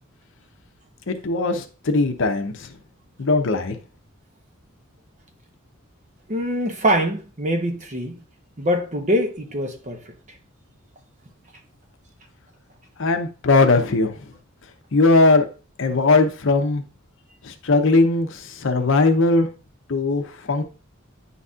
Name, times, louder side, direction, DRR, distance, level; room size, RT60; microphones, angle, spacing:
voice 1, 1.1-2.7 3.2-3.8 13.0-14.3 14.9-15.5 15.8-16.8 17.4-19.5 19.9-20.6, left 3 dB, 65° left, 0.7 m, -19 dB
voice 2, 6.3-8.2 8.6-10.0, equal, 35° right, 0.9 m, -23 dB
9.9 x 4.1 x 2.4 m
head